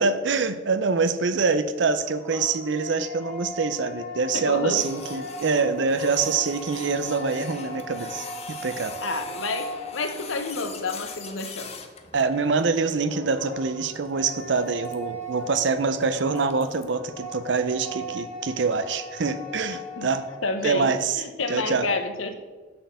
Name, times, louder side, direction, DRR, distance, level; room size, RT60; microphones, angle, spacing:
voice 1, 0.0-8.9 12.1-20.3 20.6-21.2 21.5-21.9, right 4 dB, 65° right, 12 dB, 0.5 m, -25 dB
sound 1, 1.8-10.5 12.8-20.5, left 1 dB, 10° left, 1.6 m, -39 dB
voice 2, 4.3-4.8 9.0-11.7 20.0-20.1 20.4-22.3, left 3 dB, 80° left, 7 dB, 0.9 m, -29 dB
Printer, 4.7-16.8, left 6 dB, 35° left, 0.7 m, -42 dB
7.6 x 4.4 x 6.9 m, 1.3 s
head